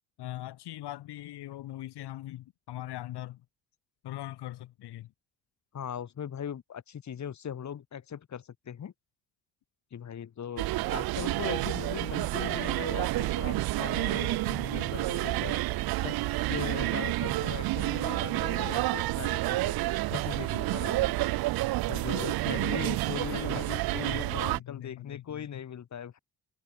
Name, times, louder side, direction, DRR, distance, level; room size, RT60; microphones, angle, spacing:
voice 1, 0.2-3.4 4.0-5.1 23.3-23.6 23.9-25.6, left 14 dB, 80° left, 3.0 m, -41 dB
voice 2, 5.7-8.9 9.9-15.6 16.0-19.8 20.1-21.3 21.9-26.2, left 8 dB, 45° left, 4.0 m, -39 dB
sound 1, 10.6-24.6, right 18 dB, 65° right, 0.5 m, -29 dB
cardioid pair, 140°, 39 cm